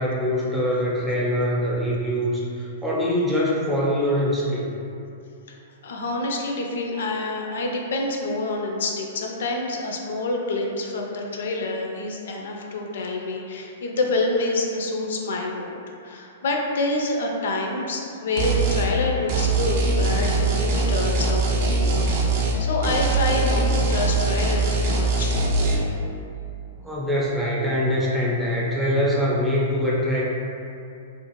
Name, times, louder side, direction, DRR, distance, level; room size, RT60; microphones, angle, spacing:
voice 1, 0.0-4.6 26.8-30.3, equal, 5° right, -6 dB, 0.6 m, -23 dB
voice 2, 5.8-25.4, left 2 dB, 75° left, 0 dB, 0.4 m, -27 dB
sound 1, 18.4-18.9 19.3-22.6 22.8-25.7, right 3 dB, 55° right, 0.5 m, -22 dB
2.5 x 2.4 x 2.9 m, 2.6 s
hypercardioid pair, 125°, 0 cm